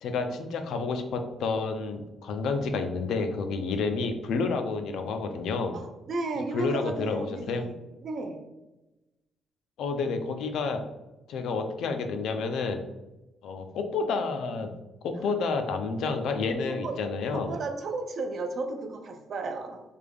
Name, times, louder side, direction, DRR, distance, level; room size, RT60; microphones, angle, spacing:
voice 1, 0.0-5.8 6.5-7.6 9.8-10.8 11.3-12.8 13.4-14.7 15.0-17.5, left 4 dB, 70° left, 6 dB, 0.4 m, -30 dB
voice 2, 5.7-7.8 8.0-8.4 16.7-17.0 17.3-19.8, right 3 dB, 40° right, 5 dB, 0.4 m, -34 dB
3.3 x 2.3 x 3.4 m, 1.0 s
cardioid pair, 175°, 0 cm